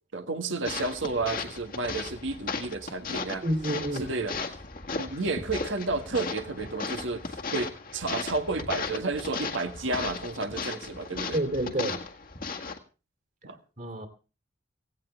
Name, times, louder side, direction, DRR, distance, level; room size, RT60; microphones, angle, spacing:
voice 1, 0.1-3.5 3.9-4.3 5.0-11.4 13.4-13.6, right 3 dB, 80° right, 1.7 m, -31 dB
sound 1, 0.6-12.8, left 4 dB, 45° left, 1.7 m, -36 dB
voice 2, 3.4-4.1 11.3-12.0 13.8-14.1, right 1 dB, 40° right, 2.7 m, -29 dB
17.5 x 16.5 x 3.3 m
head